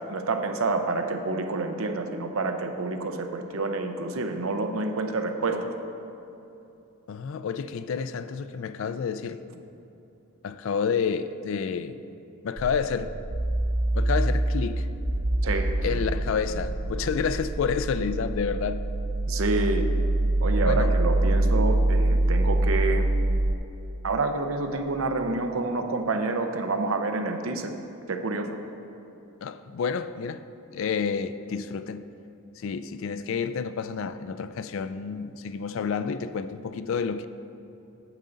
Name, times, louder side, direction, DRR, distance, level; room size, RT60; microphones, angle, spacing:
voice 1, 0.1-5.7 15.4-15.7 19.3-19.9 20.4-23.1 24.0-27.8 28.1-28.5, right 3 dB, 65° right, 6 dB, 0.6 m, -28 dB
voice 2, 7.1-9.4 10.4-12.0 12.4-13.1 13.9-14.9 15.8-18.8 20.6-20.9 29.4-30.4 30.7-32.1 32.6-37.3, left 6 dB, 60° left, 12 dB, 0.3 m, -29 dB
sound 1, 12.6-23.6, right 1 dB, 25° right, 0.4 m, -25 dB
9.1 x 7.5 x 3.9 m, 2.8 s
head